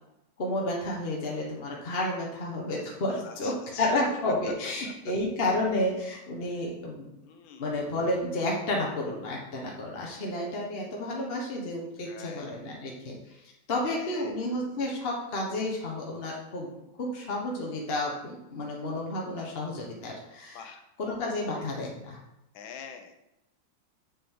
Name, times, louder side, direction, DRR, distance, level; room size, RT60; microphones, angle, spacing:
voice 1, 0.4-7.0 7.6-13.2 13.7-20.7 21.0-22.2, left 1 dB, 35° left, -2 dB, 1.1 m, -31 dB
voice 2, 3.2-3.8 7.2-7.6 12.0-12.5 13.9-14.3 20.5-20.8 22.5-23.2, left 7 dB, 75° left, 6 dB, 1.5 m, -45 dB
7.1 x 5.0 x 3.7 m, 0.88 s
omnidirectional pair, 2.2 m